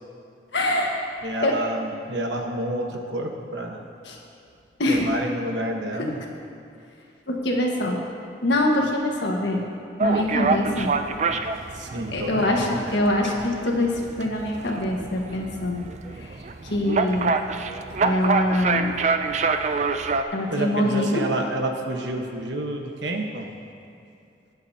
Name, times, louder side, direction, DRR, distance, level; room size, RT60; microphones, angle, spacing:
voice 1, 0.5-1.0 1.4-1.6 4.0-4.2 4.8-5.1 6.0-6.1 7.3-8.0 8.4-9.6 10.0-11.0 12.1-15.8 16.2-16.4 16.6-17.3 18.0-18.9 20.3-21.2, left 1 dB, 85° left, 0 dB, 1.5 m, -24 dB
voice 2, 1.2-3.8 4.9-6.2 11.3-11.4 11.7-13.0 16.4-16.5 20.5-23.5, right 1 dB, 85° right, 2 dB, 1.2 m, -29 dB
sound 1, 10.0-20.2, right 4 dB, 40° right, 0.4 m, -26 dB
21.0 x 7.9 x 2.8 m, 2.6 s
head